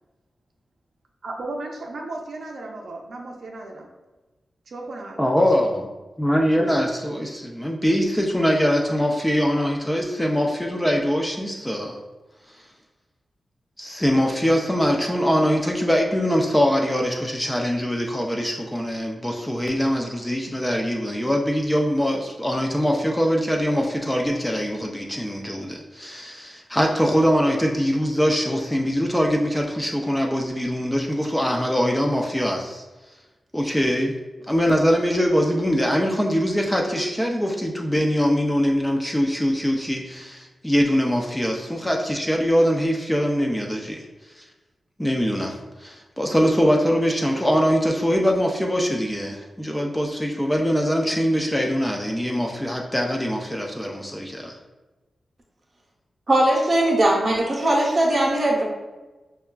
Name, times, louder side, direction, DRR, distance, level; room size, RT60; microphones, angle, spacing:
voice 1, 1.2-3.9 4.7-5.2, right 2 dB, 65° right, 1 dB, 0.5 m, -35 dB
voice 2, 5.2-5.9 6.2-12.0 13.8-32.8 33.5-34.1 34.5-44.0 44.4-44.5 45.0-54.6, equal, 5° left, 1 dB, 0.3 m, -22 dB
voice 3, 56.3-58.6, right 1 dB, 35° right, -2 dB, 0.8 m, -19 dB
5.4 x 2.3 x 2.2 m, 1.2 s
wide cardioid pair, 145°, 0 cm